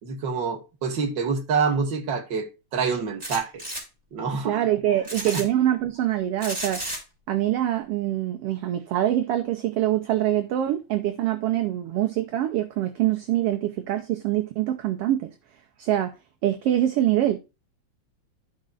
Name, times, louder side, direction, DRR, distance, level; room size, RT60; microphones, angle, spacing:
voice 1, 0.0-3.6 4.1-4.6, right 5 dB, 45° right, 2.0 m, -27 dB
sound 1, 3.2-3.8 5.0-5.4 6.4-7.0, right 1 dB, 10° right, 4.1 m, -32 dB
voice 2, 4.4-6.8 7.3-15.3 15.8-16.1 16.4-17.4, right 12 dB, 70° right, 1.6 m, -24 dB
14.5 x 5.3 x 2.5 m
omnidirectional pair, 3.3 m